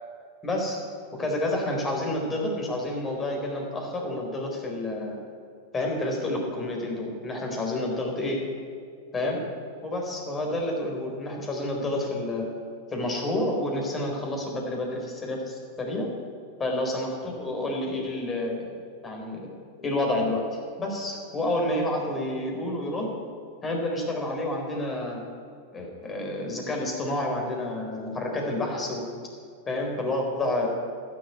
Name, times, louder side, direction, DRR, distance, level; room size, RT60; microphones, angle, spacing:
voice 1, 0.4-0.8 1.1-5.1 5.7-8.4 9.1-9.4 9.8-12.5 12.9-16.1 16.6-18.7 19.0-19.5 19.8-23.1 23.6-25.2 25.7-29.1 29.7-30.7, left 1 dB, 25° left, 0 dB, 4.2 m, -29 dB
12.0 x 7.9 x 9.9 m, 2.2 s
hypercardioid pair, 100°, 0 cm